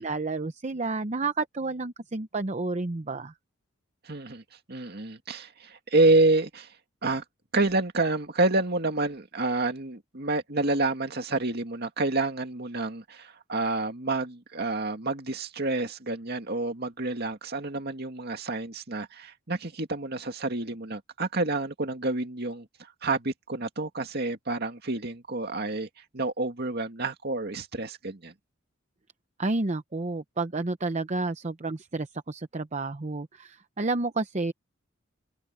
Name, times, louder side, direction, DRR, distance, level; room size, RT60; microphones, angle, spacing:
voice 1, 0.0-3.3 29.4-34.5, right 3 dB, 35° right, 0.7 m, -30 dB
voice 2, 4.0-4.4 4.7-6.7 7.0-7.2 7.5-25.9 26.1-28.3, right 2 dB, 50° right, 2.2 m, -28 dB
head